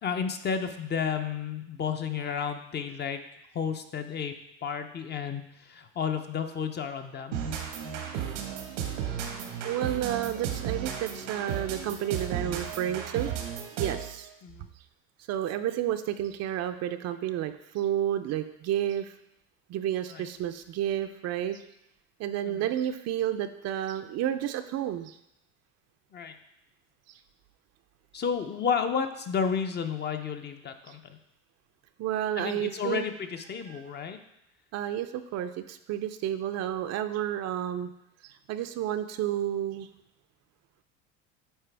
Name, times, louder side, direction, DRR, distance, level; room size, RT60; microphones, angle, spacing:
voice 1, 0.0-3.2 3.5-4.3 4.6-7.4 14.4-14.7 20.1-20.2 22.4-22.7 26.1-26.3 28.1-31.2 32.4-34.2, left 6 dB, 30° left, 7 dB, 0.6 m, -32 dB
sound 1, 7.3-14.2, right 8 dB, 85° right, 1.2 m, -34 dB
voice 2, 9.6-13.4 13.8-14.3 15.3-19.1 19.7-21.6 22.2-25.2 27.1-27.2 30.9-31.0 32.0-33.1 33.7-33.8 34.7-37.9 38.2-39.9, right 11 dB, 50° right, 9 dB, 0.5 m, -31 dB
8.8 x 4.1 x 3.4 m, 0.82 s
supercardioid pair, 105°, 35 cm